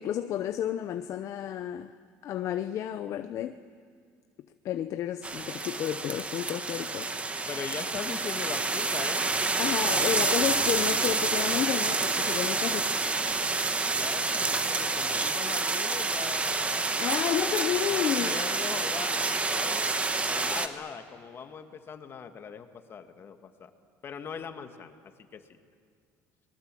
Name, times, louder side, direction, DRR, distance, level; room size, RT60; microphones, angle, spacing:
voice 1, 0.0-1.9 2.2-3.6 4.6-7.1 9.6-12.9 17.0-18.4, left 11 dB, 50° left, 9 dB, 0.8 m, -31 dB
sound 1, 5.2-20.7, right 3 dB, 20° right, 1.4 m, -28 dB
voice 2, 7.5-9.3 13.8-17.0 17.9-19.9 20.3-23.7 24.0-25.4, left 6 dB, 35° left, 7 dB, 1.9 m, -40 dB
29.5 x 21.5 x 7.7 m, 2.1 s
cardioid pair, 125°, 7 cm